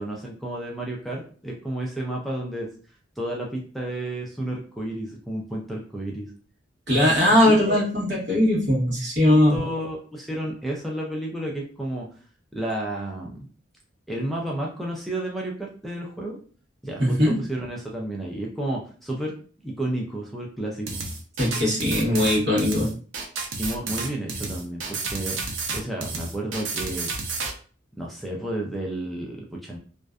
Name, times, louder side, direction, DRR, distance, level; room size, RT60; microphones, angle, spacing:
voice 1, 0.0-2.7 3.2-6.3 7.7-7.8 9.3-12.1 12.5-13.4 14.1-16.4 16.8-19.3 19.6-21.0 23.6-25.4 25.7-27.1 27.9-29.8, right 1 dB, ahead, -2 dB, 0.3 m, -31 dB
voice 2, 6.9-9.6 17.0-17.4 21.4-22.9, left 1 dB, 65° right, -4 dB, 1.0 m, -20 dB
sound 1, 20.9-27.5, right 3 dB, 80° right, 0.5 m, -31 dB
2.5 x 2.1 x 2.3 m, 0.42 s
head